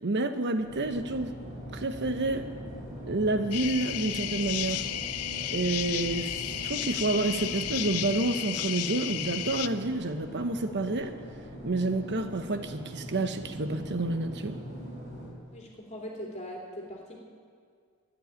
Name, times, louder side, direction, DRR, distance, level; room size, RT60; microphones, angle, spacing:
voice 1, 0.0-1.3 1.7-2.4 3.1-4.8 5.5-11.1 11.6-14.6, right 2 dB, 55° right, 9 dB, 1.0 m, -29 dB
sound 1, 0.6-15.3, equal, 35° right, 5.3 m, -42 dB
sound 2, 3.5-9.7, left 12 dB, 85° left, 0.6 m, -33 dB
voice 2, 15.5-17.2, equal, 30° left, -2 dB, 3.0 m, -41 dB
14.0 x 10.0 x 9.4 m, 2.1 s
head